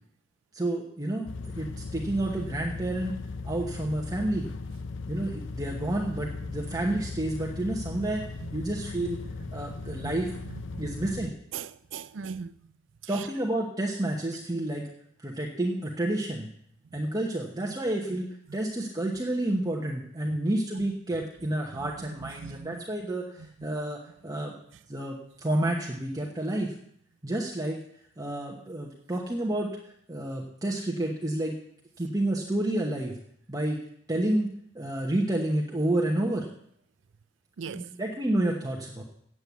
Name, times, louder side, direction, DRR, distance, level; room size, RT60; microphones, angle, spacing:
voice 1, 0.5-3.2 3.4-4.5 5.1-8.2 8.5-9.2 9.5-10.4 10.8-11.3 13.1-14.9 15.2-16.5 16.9-24.5 24.9-26.7 27.2-27.8 28.2-31.6 32.0-33.2 33.5-33.8 34.1-34.5 34.7-36.5 37.7-39.0, right 1 dB, 20° right, 1.0 m, -30 dB
sound 1, 1.3-11.3, left 3 dB, 80° left, 0.6 m, -38 dB
voice 2, 10.5-10.9 11.5-12.5 13.2-13.3 20.2-20.4 21.7-21.9 22.4-22.8 37.6-37.9, right 6 dB, 80° right, 0.5 m, -39 dB
8.6 x 7.8 x 8.1 m
head